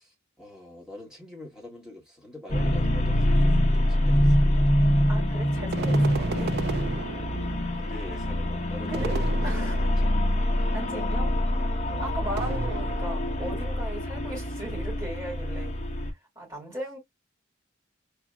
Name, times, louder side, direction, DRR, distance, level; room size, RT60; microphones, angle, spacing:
voice 1, 0.0-4.8 7.3-10.5, left 2 dB, 5° right, 1.6 m, -45 dB
sound 1, 2.5-16.1, left 1 dB, 35° left, 1.0 m, -25 dB
voice 2, 5.1-6.5 8.9-9.1 9.4-9.9 10.7-11.4 11.9-15.7 16.3-17.0, right 1 dB, 20° right, 2.9 m, -37 dB
sound 2, 5.7-7.7 8.9-10.1 12.4-13.4, right 5 dB, 50° right, 0.3 m, -34 dB
4.7 x 2.8 x 2.3 m
head